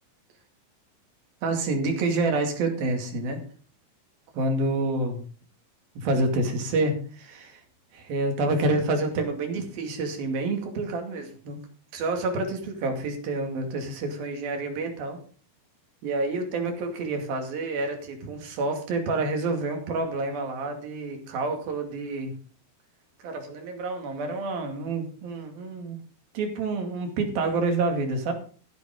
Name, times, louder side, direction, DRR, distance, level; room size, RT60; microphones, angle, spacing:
voice 1, 1.4-3.5 4.3-5.2 6.0-7.6 7.9-11.6 11.9-15.2 16.0-22.3 23.2-26.0 26.3-28.3, right 2 dB, 85° right, 4 dB, 4.2 m, -28 dB
14.5 x 8.2 x 5.3 m, 0.41 s
omnidirectional pair, 4.1 m